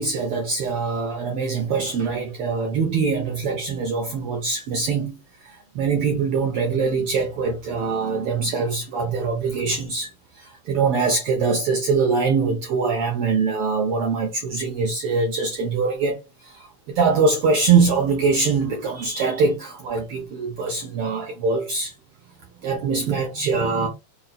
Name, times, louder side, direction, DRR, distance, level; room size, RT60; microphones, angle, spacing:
voice 1, 0.0-21.9 22.6-23.9, right 4 dB, 75° right, 1.3 m, -23 dB
5.3 x 2.1 x 4.1 m
omnidirectional pair, 3.5 m